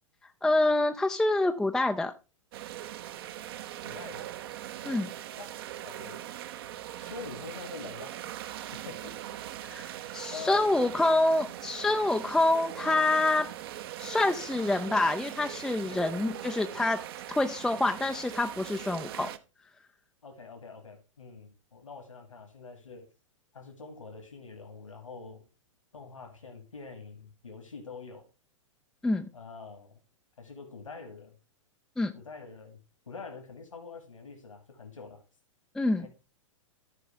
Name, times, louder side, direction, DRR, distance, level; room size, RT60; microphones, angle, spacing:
voice 1, 0.4-2.1 4.8-5.1 9.6-13.5 14.0-17.0 17.4-19.3 29.0-29.3 32.0-32.1 35.8-36.1, left 2 dB, 5° left, 6 dB, 0.3 m, -26 dB
sound 1, 2.5-19.4, right 12 dB, 50° right, 0.7 m, -41 dB
voice 2, 3.8-4.3 5.4-5.5 5.8-6.3 7.0-8.2 8.7-9.3 10.3-10.8 15.8-16.1 20.2-23.1 23.5-25.4 25.9-28.3 29.3-30.0 30.4-31.3 32.1-32.8 33.1-35.2 36.0-36.1, left 4 dB, 75° left, 3 dB, 2.2 m, -45 dB
14.0 x 4.9 x 3.3 m, 0.31 s
figure-of-eight pair, 105°, 17 cm